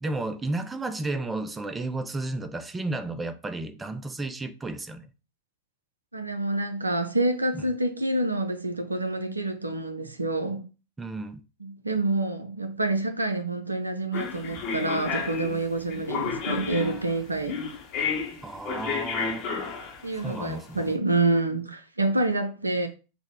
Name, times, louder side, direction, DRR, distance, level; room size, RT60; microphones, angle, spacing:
voice 1, 0.0-5.1 7.5-7.7 11.0-11.4 18.4-19.5 20.1-20.9, right 2 dB, 10° right, 0.4 m, -33 dB
voice 2, 6.1-10.6 11.6-17.6 20.0-22.9, right 2 dB, 80° right, 0.5 m, -27 dB
sound 1, 14.1-20.8, left 5 dB, 40° left, 0.8 m, -32 dB
3.5 x 2.1 x 3.5 m
figure-of-eight pair, 90°, 0 cm